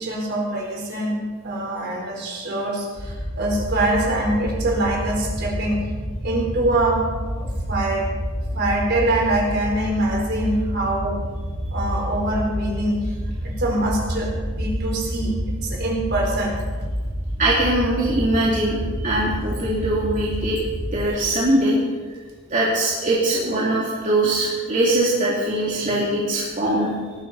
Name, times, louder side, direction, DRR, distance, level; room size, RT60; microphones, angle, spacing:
voice 1, 0.0-5.9 6.2-7.1 7.4-8.1 8.5-11.2 11.7-13.0 13.4-16.6 25.8-26.1, right 1 dB, 55° right, 0 dB, 4.4 m, -24 dB
sound 1, 3.0-21.0, equal, 20° right, 4.5 m, -29 dB
voice 2, 17.4-20.6 20.9-21.8 22.5-26.9, right 1 dB, 40° right, -6 dB, 2.9 m, -21 dB
19.0 x 14.5 x 4.3 m, 1.4 s
head